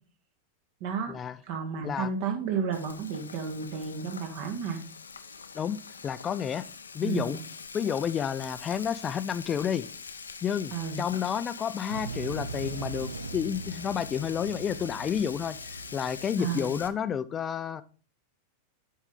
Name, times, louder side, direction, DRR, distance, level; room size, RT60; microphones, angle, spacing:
voice 1, 0.8-1.1 1.5-4.8 7.0-7.4 10.7-11.0 16.4-16.7, right 6 dB, 45° right, 4 dB, 1.7 m, -32 dB
Frying (food), 2.7-16.9, left 5 dB, 75° left, 0.6 m, -44 dB
voice 2, 5.5-6.7 6.9-7.4 7.7-9.9 10.4-15.6 15.9-17.8, left 8 dB, 25° left, 14 dB, 0.5 m, -30 dB
sound 1, 11.9-16.9, right 4 dB, 75° right, 0.5 m, -40 dB
8.0 x 5.5 x 3.7 m, 0.39 s
figure-of-eight pair, 90°, 0 cm